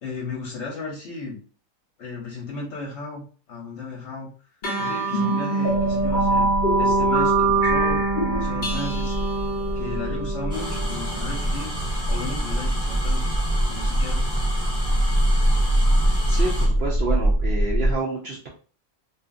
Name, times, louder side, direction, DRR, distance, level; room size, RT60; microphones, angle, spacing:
voice 1, 0.0-1.4 2.0-4.3 4.8-9.2 9.8-11.7 12.1-13.3 13.7-14.2, left 3 dB, 60° left, -2 dB, 0.8 m, -35 dB
sound 1, 4.6-11.5, right 3 dB, 75° left, 0.4 m, -23 dB
sound 2, 5.7-18.0, right 1 dB, 50° right, 0.8 m, -24 dB
sound 3, 10.5-16.7, equal, 10° right, 0.3 m, -34 dB
voice 2, 16.2-18.5, right 3 dB, 80° right, -2 dB, 0.5 m, -29 dB
2.7 x 2.4 x 2.4 m, 0.40 s
omnidirectional pair, 1.7 m